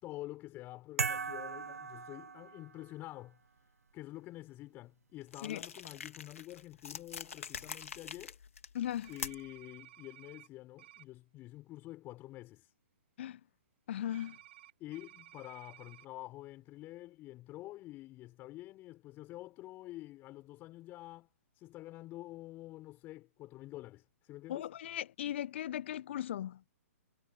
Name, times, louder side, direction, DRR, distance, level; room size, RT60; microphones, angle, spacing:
voice 1, 0.0-3.4 3.9-8.4 9.1-12.7 14.8-21.3 21.5-24.7, left 16 dB, 25° left, 5.3 m, -48 dB
sound 1, 1.0-2.9, right 5 dB, 75° right, 0.5 m, -38 dB
sound 2, 5.3-9.6, left 6 dB, 65° left, 2.9 m, -45 dB
voice 2, 8.7-9.1 13.2-13.4 13.9-14.4 24.5-26.6, left 11 dB, 50° left, 1.1 m, -37 dB
sound 3, 9.0-10.5 10.8-11.0 14.1-16.1, right 15 dB, 45° right, 3.5 m, -56 dB
figure-of-eight pair, 120°, 8 cm